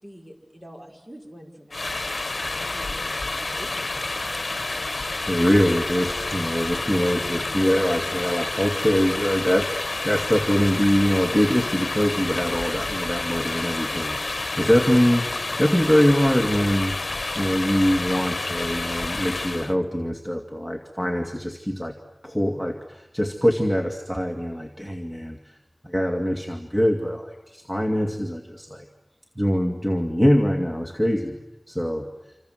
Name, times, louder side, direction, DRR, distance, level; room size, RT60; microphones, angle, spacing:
voice 1, 0.0-1.9 2.6-3.9, equal, 25° right, 2 dB, 5.5 m, -45 dB
sound 1, 1.7-19.7, left 2 dB, 65° left, 1.1 m, -29 dB
voice 2, 5.3-17.0 17.3-21.9 22.2-25.6 25.8-28.9 29.4-31.4 31.7-32.1, equal, 5° right, 3 dB, 2.4 m, -23 dB
27.5 x 26.5 x 7.9 m, 1.0 s
wide cardioid pair, 50°, 0 cm